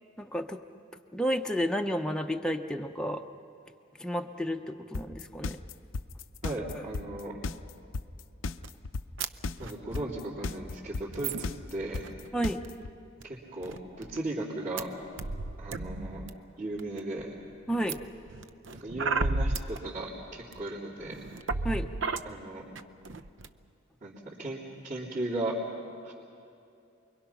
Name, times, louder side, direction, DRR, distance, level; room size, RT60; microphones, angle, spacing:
voice 1, 0.2-0.6 1.1-3.2 4.0-5.6 6.7-6.8 12.3-12.6 17.7-18.0 21.6-21.9, equal, 5° left, 4 dB, 0.7 m, -31 dB
sound 1, 4.9-12.9, left 3 dB, 80° left, 0.6 m, -34 dB
voice 2, 6.4-7.4 9.6-12.1 13.2-15.0 15.6-16.3 16.6-17.3 18.8-21.2 22.2-22.6 24.0-24.6 24.8-25.6 26.0-26.1, right 2 dB, 45° right, -10 dB, 3.4 m, -36 dB
sound 2, 8.6-8.7 9.2-9.3 9.5-10.0 10.5-10.6 11.1-12.3 12.6-12.8 13.2-13.3 13.6-14.2 14.8-14.9 15.2-16.3 16.8-17.2 17.9-19.8 20.5-20.6 21.0-22.2 22.8-22.9 23.1-23.5, right 3 dB, 65° right, 0.7 m, -33 dB
29.0 x 22.5 x 5.9 m, 2.6 s
head